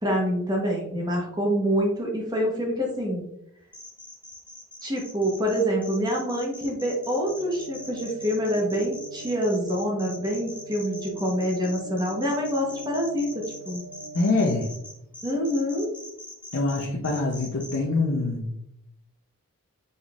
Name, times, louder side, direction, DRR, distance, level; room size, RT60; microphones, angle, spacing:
voice 1, 0.0-3.3 4.8-13.8 15.2-15.9, equal, 20° right, -1 dB, 1.0 m, -26 dB
sound 1, 3.7-17.8, left 2 dB, 5° left, 0.7 m, -42 dB
sound 2, 7.3-14.7, right 3 dB, 65° right, 1.0 m, -43 dB
voice 2, 14.1-14.7 16.5-18.6, left 3 dB, 65° left, -2 dB, 0.7 m, -25 dB
5.2 x 4.0 x 2.4 m, 0.80 s
head